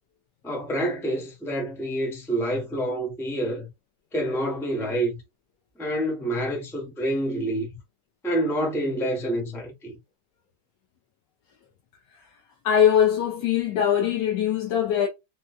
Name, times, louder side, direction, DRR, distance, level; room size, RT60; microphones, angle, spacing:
voice 1, 0.4-3.7 4.1-5.2 5.8-7.7 8.2-10.0, right 1 dB, ahead, 0.7 m, -27 dB
voice 2, 12.6-15.1, left 9 dB, 65° left, 1.2 m, -22 dB
4.2 x 2.2 x 2.3 m
omnidirectional pair, 2.3 m